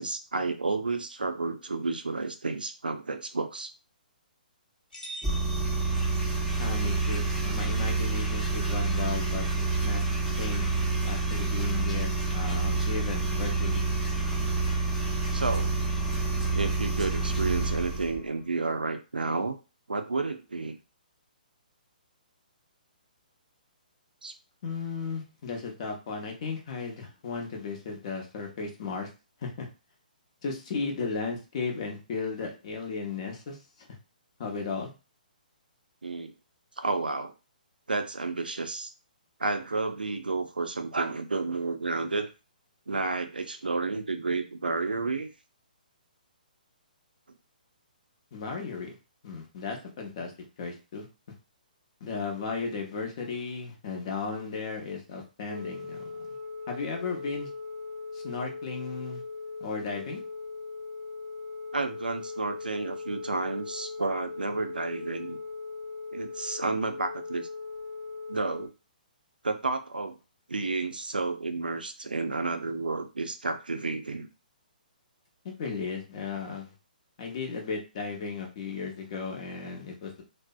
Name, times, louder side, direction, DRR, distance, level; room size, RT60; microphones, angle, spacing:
voice 1, 0.0-3.7 15.3-15.8 16.5-19.6 19.9-20.8 24.2-24.3 36.0-36.3 36.8-37.3 37.9-38.9 39.4-42.3 42.9-45.3 61.7-65.4 66.1-67.5 68.3-68.7 69.4-70.2 70.5-74.3, right 3 dB, 80° right, 8 dB, 0.4 m, -31 dB
sound 1, 4.9-6.7, right 1 dB, 70° left, 1.2 m, -44 dB
sound 2, 5.2-18.2, right 3 dB, ahead, 0.5 m, -28 dB
voice 2, 6.6-13.9 24.6-29.1 29.4-29.7 30.4-33.9 34.4-34.9 48.3-49.0 49.2-50.3 50.6-51.1 52.0-56.1 56.7-57.5 58.1-59.2 59.6-60.2 75.4-76.7 77.2-80.2, left 4 dB, 45° left, 2 dB, 0.7 m, -35 dB
Telephone, 55.5-68.7, left 4 dB, 90° left, 0.4 m, -39 dB
2.5 x 2.0 x 2.3 m, 0.30 s
figure-of-eight pair, 130°, 5 cm